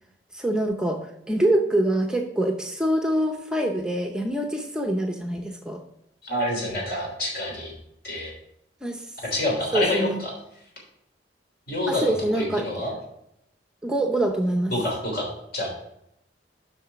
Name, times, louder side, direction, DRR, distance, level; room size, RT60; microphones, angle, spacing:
voice 1, 0.3-5.8 8.8-9.1 9.7-10.2 11.9-12.7 13.8-14.7, right 1 dB, 5° right, 3 dB, 0.6 m, -25 dB
voice 2, 6.2-7.7 8.0-8.3 9.3-10.3 11.7-12.9 14.7-15.7, left 1 dB, 60° left, -1 dB, 3.3 m, -27 dB
7.0 x 5.9 x 5.8 m, 0.79 s
head